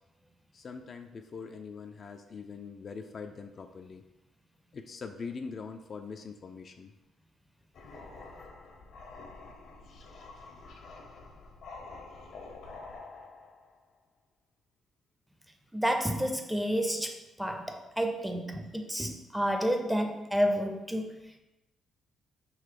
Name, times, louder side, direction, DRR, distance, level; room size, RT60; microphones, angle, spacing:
voice 1, 0.5-4.0 4.7-6.9, left 5 dB, 45° left, 5 dB, 0.3 m, -42 dB
sound 1, 7.7-13.8, left 3 dB, 70° left, 0.7 m, -48 dB
voice 2, 15.7-21.1, equal, 5° right, 4 dB, 0.6 m, -30 dB
3.9 x 2.7 x 4.7 m, 0.99 s
cardioid pair, 90°, 0 cm